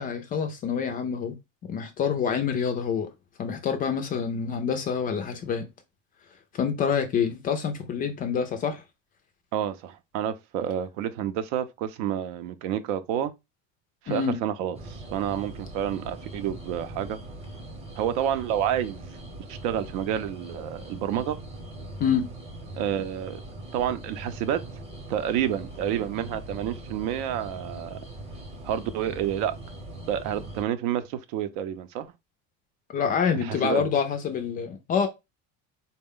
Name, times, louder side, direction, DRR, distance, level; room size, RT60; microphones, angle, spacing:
voice 1, 0.0-1.4 1.7-3.1 3.4-5.7 6.5-8.8 14.1-14.4 22.0-22.3 32.9-35.1, left 7 dB, 25° left, 0.3 m, -27 dB
voice 2, 9.5-13.3 14.0-17.2 18.0-19.2 19.5-21.4 22.8-23.4 23.7-24.6 25.1-28.0 28.6-29.6 30.1-32.1 33.3-33.9, right 10 dB, 70° right, 0.6 m, -29 dB
sound 1, 14.7-30.6, right 1 dB, 15° right, 0.8 m, -41 dB
4.1 x 2.1 x 3.5 m
cardioid pair, 155°, 35 cm